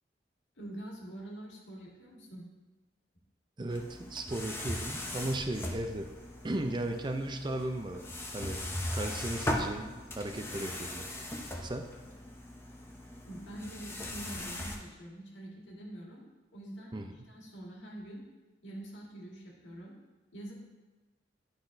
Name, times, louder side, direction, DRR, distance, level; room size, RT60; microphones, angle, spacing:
voice 1, 0.6-2.5 13.3-18.2 18.6-19.9 20.3-20.5, right 1 dB, 85° left, -3 dB, 1.8 m, -45 dB
voice 2, 3.6-6.1 6.4-8.0 8.3-8.6 8.9-11.1 11.6-11.9 16.9-17.1, right 1 dB, 25° right, 5 dB, 0.5 m, -36 dB
sound 1, 3.7-14.8, left 1 dB, 15° left, 0.7 m, -39 dB
10.0 x 5.9 x 2.6 m, 1.2 s
head